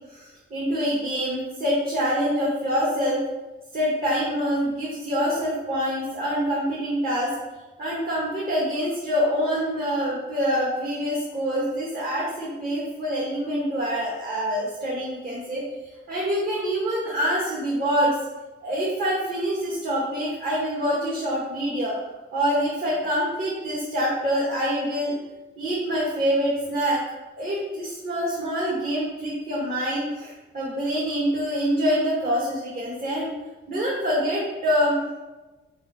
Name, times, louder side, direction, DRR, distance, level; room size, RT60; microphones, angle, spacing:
voice 1, 0.1-3.2 3.7-7.4 7.8-15.6 16.1-18.2 18.6-21.9 22.3-25.2 25.6-27.0 27.4-33.3 33.7-35.0, equal, 45° right, -6 dB, 1.9 m, -25 dB
5.3 x 4.9 x 5.8 m, 1.1 s
wide cardioid pair, 175°, 21 cm